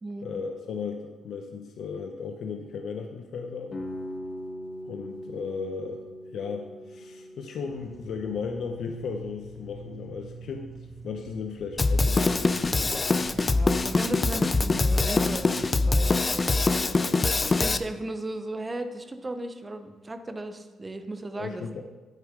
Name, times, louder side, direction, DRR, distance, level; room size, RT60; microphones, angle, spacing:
voice 1, 0.2-3.8 4.8-6.0 6.3-10.7 11.0-13.0 16.9-17.2 21.4-21.8, left 5 dB, 65° left, 4 dB, 0.7 m, -36 dB
sound 1, 3.7-9.5, equal, 45° left, 1.4 m, -41 dB
sound 2, 7.6-15.6, right 2 dB, 10° left, 2.5 m, -46 dB
Drum kit, 11.8-17.8, left 3 dB, 30° left, 0.4 m, -23 dB
voice 2, 13.4-16.6 17.6-21.7, right 1 dB, 20° right, 8 dB, 0.7 m, -36 dB
9.0 x 8.8 x 3.7 m, 1.2 s
cardioid pair, 90°, 0 cm